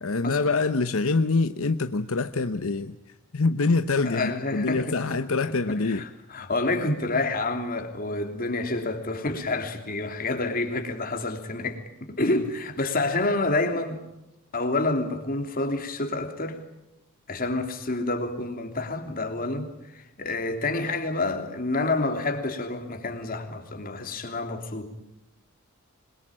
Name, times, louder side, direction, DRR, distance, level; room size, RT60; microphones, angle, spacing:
voice 1, 0.0-3.0 3.3-6.0, left 3 dB, 75° left, 0.9 m, -25 dB
voice 2, 4.0-5.2 5.4-14.0 14.5-16.6 17.3-24.9, left 2 dB, 40° left, 3.2 m, -28 dB
26.5 x 22.5 x 8.8 m
head